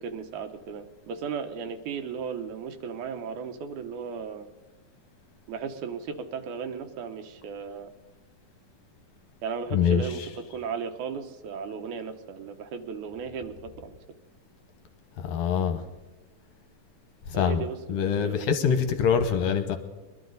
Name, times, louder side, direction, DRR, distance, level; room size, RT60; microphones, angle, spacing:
voice 1, 0.0-4.5 5.5-7.9 9.4-10.2 10.5-14.0 17.3-18.7, right 6 dB, 75° right, 8 dB, 2.3 m, -36 dB
voice 2, 9.7-10.3 15.2-15.8 17.3-19.8, left 7 dB, 70° left, 7 dB, 1.9 m, -25 dB
22.5 x 12.0 x 4.0 m, 1.2 s
omnidirectional pair, 3.7 m